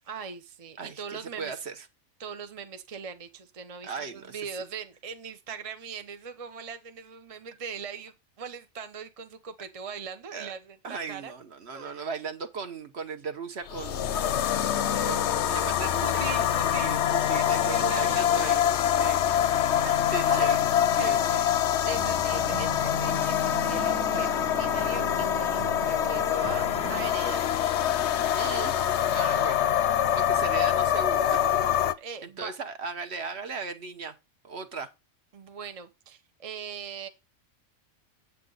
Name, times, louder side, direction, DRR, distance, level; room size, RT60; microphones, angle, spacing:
voice 1, 0.1-1.6 2.2-11.3 11.7-12.1 14.0-14.1 14.9-15.1 16.0-17.1 17.7-18.5 19.0-19.4 19.8-20.0 20.3-20.6 21.0-27.5 31.9-32.5 35.3-37.1, right 6 dB, 35° right, 0.7 m, -40 dB
voice 2, 0.8-1.9 3.8-4.4 10.3-10.5 10.8-14.1 15.0-18.6 19.0-19.2 20.1-20.6 20.9-21.2 28.3-28.8 29.1-31.4 32.2-34.2 34.4-34.9, right 5 dB, 55° right, 1.2 m, -37 dB
sound 1, 13.7-31.9, left 10 dB, 65° left, 0.8 m, -25 dB
sound 2, 21.9-27.3, right 7 dB, 75° right, 1.4 m, -39 dB
8.5 x 8.2 x 3.9 m
omnidirectional pair, 1.4 m